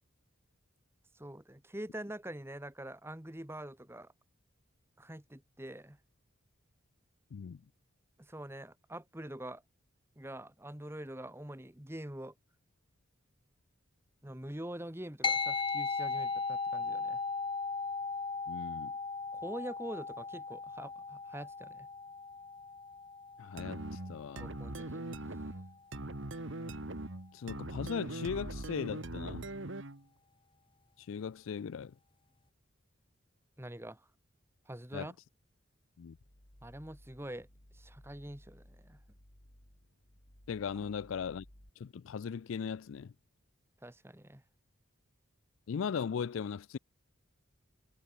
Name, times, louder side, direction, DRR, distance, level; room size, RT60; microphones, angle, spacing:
voice 1, 1.1-4.1 5.0-6.0 8.2-9.6 10.2-12.3 14.2-17.2 19.3-21.9 24.4-25.4 33.6-34.1 34.7-35.1 36.6-37.5 37.7-39.0 43.8-44.4, right 1 dB, 10° right, 1.4 m, -45 dB
voice 2, 7.3-7.6 18.5-18.9 23.4-24.5 27.3-29.5 31.0-31.9 34.9-35.1 36.0-36.2 40.5-41.4 41.8-43.1 45.7-46.8, left 6 dB, 70° left, 0.4 m, -38 dB
sound 1, 15.2-24.9, left 4 dB, 25° left, 1.3 m, -37 dB
sound 2, 23.6-30.0, right 2 dB, 60° right, 1.8 m, -41 dB
sound 3, 36.1-41.7, equal, 50° left, 4.9 m, -59 dB
head